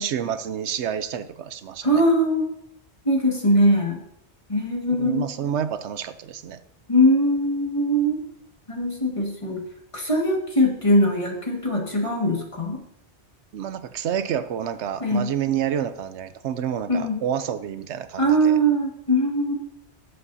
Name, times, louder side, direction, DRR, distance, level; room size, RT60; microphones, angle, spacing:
voice 1, 0.0-1.9 4.9-6.6 13.5-18.6, right 9 dB, 80° right, 12 dB, 0.9 m, -29 dB
voice 2, 1.8-2.5 3.0-4.0 4.5-5.3 6.9-8.2 8.7-9.6 9.9-12.8 15.0-15.3 16.9-17.2 18.2-19.5, equal, 30° left, 0 dB, 1.8 m, -21 dB
17.0 x 7.7 x 2.7 m, 0.73 s
omnidirectional pair, 1.2 m